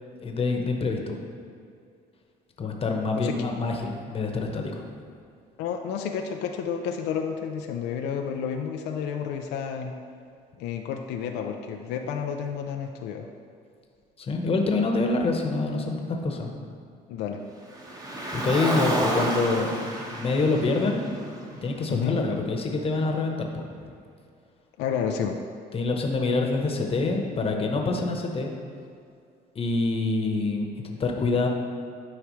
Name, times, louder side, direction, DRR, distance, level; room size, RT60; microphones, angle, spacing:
voice 1, 0.2-1.2 2.6-4.8 14.2-16.5 18.3-19.8 20.1-21.0 21.6-23.9 25.7-28.5 29.5-31.5, left 3 dB, 35° left, 2 dB, 1.1 m, -26 dB
voice 2, 5.6-9.9 10.6-13.3 17.1-17.4 21.9-22.2 24.8-25.4, left 7 dB, 90° left, 4 dB, 0.5 m, -30 dB
Car, 17.7-22.1, right 1 dB, 20° right, 1.2 m, -31 dB
11.5 x 4.7 x 3.2 m, 2.4 s
cardioid pair, 110°, 17 cm